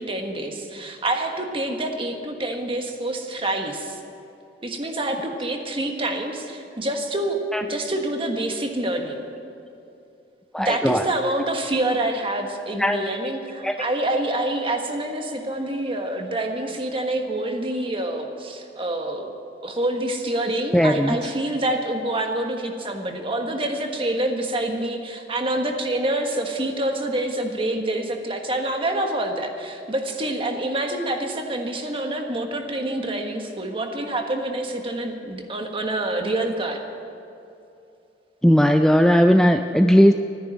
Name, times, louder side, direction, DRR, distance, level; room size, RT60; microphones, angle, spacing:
voice 1, 0.0-4.0 4.6-7.4 7.7-9.3 10.6-19.3 19.6-36.8, right 1 dB, 30° right, 3 dB, 1.5 m, -27 dB
voice 2, 10.5-11.0 12.8-13.0 13.6-13.8 20.7-21.2 38.4-40.1, equal, 5° left, 6 dB, 0.4 m, -17 dB
14.0 x 10.0 x 8.9 m, 2.7 s
head